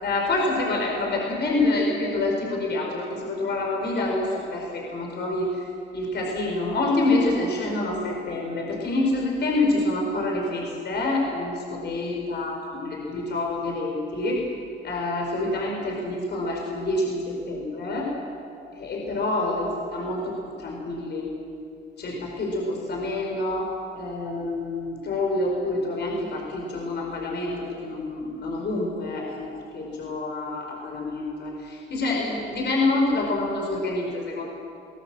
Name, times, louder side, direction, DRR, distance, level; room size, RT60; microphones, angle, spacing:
voice 1, 0.0-5.5 5.9-14.4 14.8-18.1 18.8-21.3 22.0-34.5, left 2 dB, 60° left, -1 dB, 4.9 m, -27 dB
23.0 x 18.0 x 7.8 m, 2.4 s
cardioid pair, 90°, 20 cm